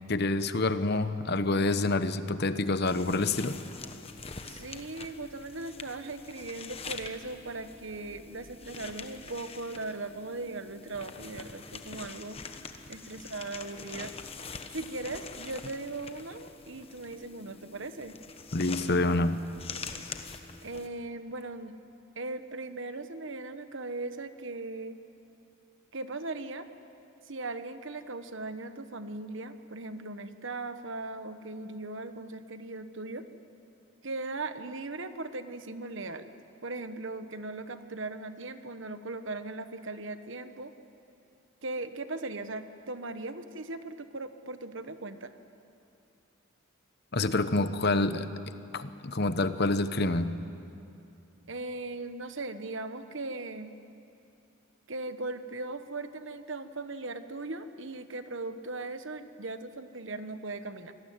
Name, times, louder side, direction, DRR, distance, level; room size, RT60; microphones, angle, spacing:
voice 1, 0.1-3.6 18.5-19.4 47.1-50.4, left 2 dB, 50° left, 11 dB, 1.0 m, -27 dB
sound 1, 2.8-20.9, left 4 dB, 25° left, 1.2 m, -45 dB
voice 2, 4.4-12.4 12.9-14.1 14.7-18.2 20.6-21.7 22.1-25.0 25.9-26.7 27.3-33.2 34.0-36.3 36.6-40.7 41.6-45.3 51.5-53.7 54.9-60.9, right 2 dB, 60° right, 10 dB, 1.2 m, -38 dB
27.0 x 19.5 x 9.5 m, 2.6 s
head